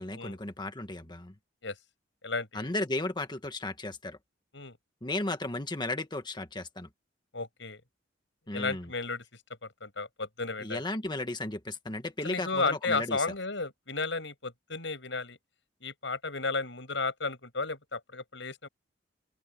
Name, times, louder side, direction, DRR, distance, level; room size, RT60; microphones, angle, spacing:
voice 1, 0.0-1.3 2.5-4.2 5.0-6.9 8.5-8.9 10.6-13.2, left 2 dB, 25° left, 1.7 m, -35 dB
voice 2, 2.2-2.7 4.5-4.8 7.3-7.8 8.5-9.2 9.6-10.8 12.2-15.4 15.8-18.7, left 3 dB, 80° left, 7.0 m, -33 dB
open air
head